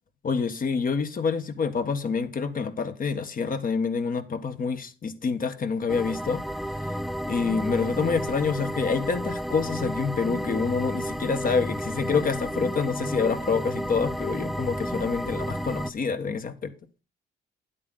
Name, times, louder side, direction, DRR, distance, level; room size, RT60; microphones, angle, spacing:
voice 1, 0.2-6.4 6.8-6.9 7.3-16.7, left 5 dB, 45° left, 1.5 m, -27 dB
sound 1, 5.9-15.9, equal, ahead, 0.6 m, -32 dB
10.5 x 8.4 x 4.0 m
cardioid pair, 90°, 20 cm